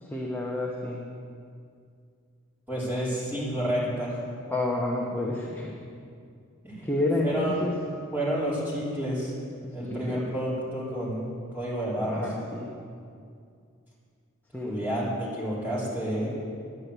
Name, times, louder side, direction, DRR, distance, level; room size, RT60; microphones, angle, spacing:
voice 1, 0.0-1.1 4.5-5.8 6.8-7.7 9.9-10.2 12.0-12.7 14.5-14.9, left 2 dB, 10° left, -4 dB, 1.1 m, -29 dB
voice 2, 2.7-4.2 6.6-6.9 7.2-7.7 8.1-9.3 9.7-11.2 11.5-12.2 14.6-16.3, equal, 10° right, -8 dB, 4.4 m, -30 dB
10.5 x 10.5 x 8.2 m, 2.3 s
head